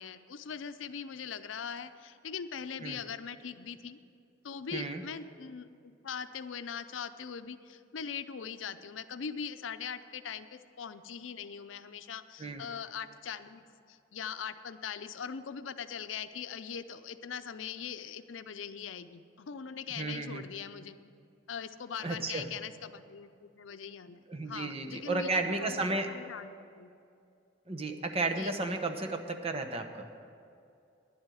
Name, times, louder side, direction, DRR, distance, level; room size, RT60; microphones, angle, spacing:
voice 1, 0.0-4.0 4.4-21.0 21.5-26.9 28.4-28.5, left 7 dB, 85° left, 11 dB, 0.6 m, -41 dB
voice 2, 4.7-5.0 12.4-12.6 19.9-20.4 22.0-22.4 24.3-26.1 27.7-30.1, right 3 dB, 30° right, 5 dB, 0.9 m, -33 dB
10.5 x 8.0 x 9.1 m, 2.5 s
head